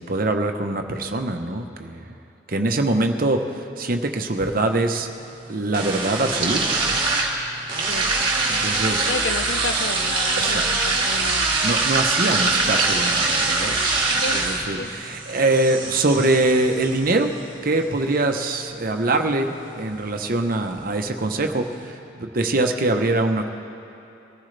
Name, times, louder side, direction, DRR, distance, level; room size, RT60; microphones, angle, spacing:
voice 1, 0.0-2.0 2.5-5.1 5.5-7.0 8.5-9.1 10.4-11.0 11.6-13.8 14.1-17.3 17.6-23.5, right 2 dB, 50° right, 5 dB, 1.0 m, -23 dB
sound 1, 3.9-21.9, right 3 dB, 25° right, 2.0 m, -25 dB
voice 2, 7.9-8.3 9.1-11.5 14.2-14.4 14.8-14.9, left 3 dB, 80° left, 8 dB, 0.6 m, -31 dB
23.0 x 14.5 x 3.3 m, 3.0 s
head